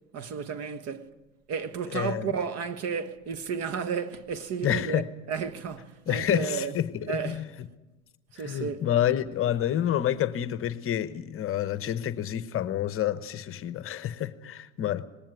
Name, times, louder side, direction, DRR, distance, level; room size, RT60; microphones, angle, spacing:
voice 1, 0.1-1.1 1.5-6.7 7.1-7.4 8.4-8.8, right 6 dB, 40° right, 1.3 m, -33 dB
voice 2, 1.9-2.3 4.6-5.1 6.1-7.7 8.4-15.1, left 11 dB, 35° left, 1.0 m, -28 dB
19.0 x 18.0 x 9.4 m
hypercardioid pair, 95°, 39 cm